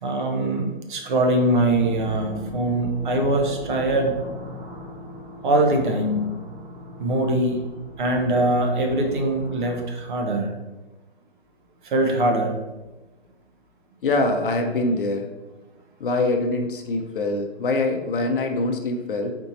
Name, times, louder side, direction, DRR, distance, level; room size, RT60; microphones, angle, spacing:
voice 1, 0.0-4.1 5.4-6.3 7.0-7.6 8.0-10.5 11.8-12.6, right 1 dB, 50° right, 2 dB, 0.8 m, -22 dB
sound 1, 1.6-9.8, left 1 dB, 10° right, 0.7 m, -38 dB
voice 2, 14.0-15.3 16.0-19.4, left 2 dB, 55° left, 4 dB, 0.6 m, -24 dB
4.4 x 2.7 x 4.1 m, 1.1 s
hypercardioid pair, 140°, 32 cm